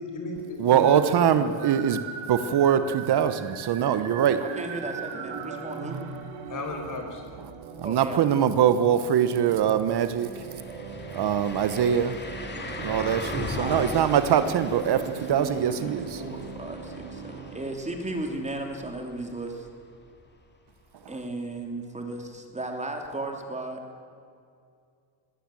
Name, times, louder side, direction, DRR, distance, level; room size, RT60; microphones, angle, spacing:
voice 1, 0.0-1.7 6.5-7.2, left 2 dB, 40° left, 4 dB, 5.1 m, -35 dB
voice 2, 0.6-2.0 2.3-4.4 7.8-10.3 11.1-12.1 12.8-16.2, right 9 dB, 55° right, 11 dB, 1.2 m, -23 dB
sound 1, 0.6-17.7, right 5 dB, 85° right, 3.0 m, -40 dB
voice 3, 4.4-6.0 7.8-8.3 13.6-13.9 14.9-19.7 21.1-23.8, right 2 dB, 15° right, 3 dB, 3.0 m, -35 dB
sound 2, 9.6-9.7 10.0-19.8 20.2-20.3 23.0-23.1, left 3 dB, 20° left, 2.4 m, -39 dB
21.0 x 17.0 x 7.7 m, 2.4 s
cardioid pair, 125°, 47 cm